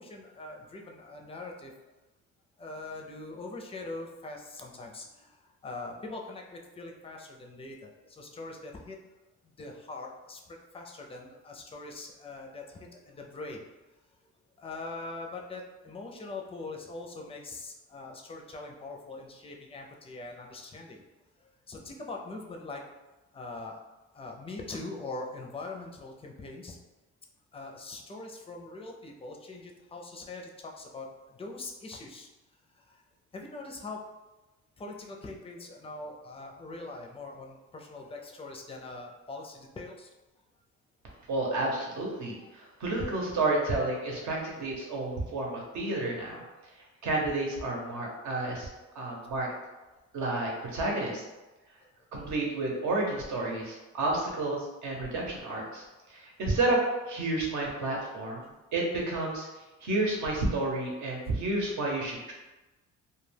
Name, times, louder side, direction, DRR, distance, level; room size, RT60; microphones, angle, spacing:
voice 1, 0.0-1.7 2.6-9.0 9.4-13.6 14.6-21.0 21.4-22.8 23.3-23.8 24.1-26.8 27.5-32.3 32.7-33.0 33.3-34.0 34.8-40.1 42.4-42.5 51.8-51.9, left 2 dB, 20° left, 1 dB, 0.4 m, -42 dB
voice 2, 41.3-46.4 47.0-48.7 48.9-49.5 50.1-51.2 52.1-56.8 57.1-59.5 59.8-62.3, right 2 dB, 70° right, -1 dB, 0.9 m, -31 dB
2.2 x 2.2 x 3.3 m, 1.1 s
cardioid pair, 90°, 30 cm